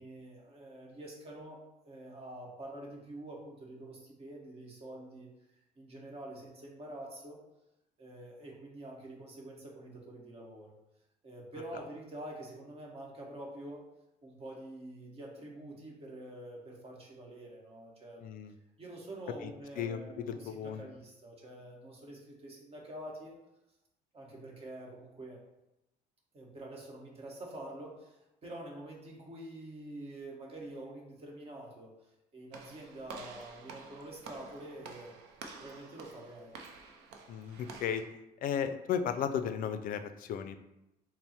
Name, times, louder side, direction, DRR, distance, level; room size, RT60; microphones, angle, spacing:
voice 1, 0.0-1.6 1.8-5.3 5.8-7.4 8.0-10.7 11.2-13.9 14.2-18.3 18.8-23.4 24.1-25.4 26.3-31.9 32.3-35.1 35.6-36.5, right 1 dB, 35° right, -2 dB, 1.1 m, -46 dB
voice 2, 18.2-18.5 19.4-19.5 19.8-20.0 20.3-20.8 37.3-38.0 38.4-40.6, left 8 dB, 55° left, 9 dB, 0.4 m, -34 dB
Walk footsteps / Slam, 32.5-38.1, right 4 dB, 90° right, 0.5 m, -50 dB
4.3 x 2.1 x 4.2 m, 0.90 s
cardioid pair, 110°, 17 cm